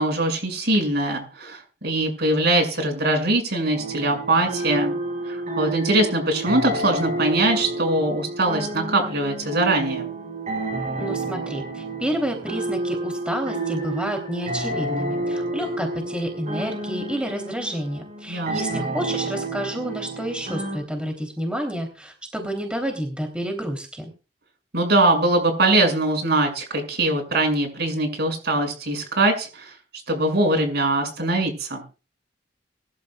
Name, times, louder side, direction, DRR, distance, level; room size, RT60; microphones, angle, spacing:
voice 1, 0.0-4.9 5.3-10.1 18.3-18.9 24.7-29.7 30.1-31.8, right 2 dB, 60° right, 4 dB, 6.4 m, -22 dB
sound 1, 3.7-20.8, right 2 dB, 40° right, 5.3 m, -30 dB
voice 2, 11.0-24.1, equal, 5° right, 3 dB, 3.2 m, -29 dB
24.5 x 12.5 x 2.4 m, 0.34 s
head